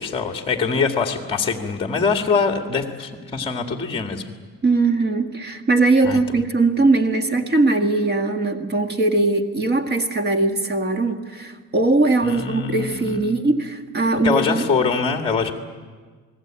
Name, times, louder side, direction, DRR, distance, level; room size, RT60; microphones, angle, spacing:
voice 1, 0.0-4.2 6.0-6.2 12.2-13.4 14.2-15.5, left 5 dB, 20° left, 4 dB, 2.0 m, -23 dB
voice 2, 4.6-14.7, right 3 dB, 35° right, 6 dB, 1.8 m, -20 dB
29.0 x 20.0 x 8.9 m, 1.5 s
cardioid pair, 155°, 31 cm